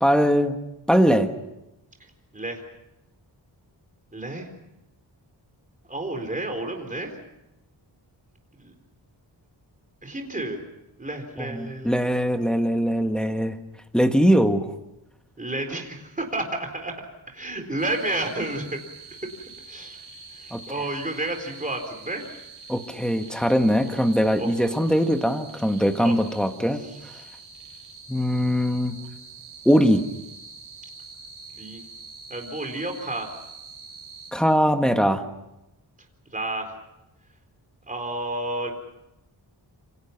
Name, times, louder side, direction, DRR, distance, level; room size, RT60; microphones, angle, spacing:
voice 1, 0.0-0.6 0.9-1.3 11.4-13.6 13.9-14.7 20.5-20.6 22.7-26.8 28.1-29.0 29.6-30.0 34.3-35.2, equal, ahead, 6 dB, 1.5 m, -21 dB
voice 2, 4.1-4.5 5.9-7.1 8.6-8.7 10.0-10.6 11.0-12.0 15.4-18.8 19.2-20.0 20.3-22.3 23.8-24.1 24.3-24.9 26.0-26.2 26.8-27.3 31.5-31.8 32.3-33.4 36.3-36.7 37.9-38.7, right 2 dB, 20° right, 4 dB, 4.1 m, -31 dB
sound 1, 17.8-34.3, right 4 dB, 60° right, 6.3 m, -45 dB
28.0 x 26.5 x 5.9 m, 0.91 s
wide cardioid pair, 155°, 43 cm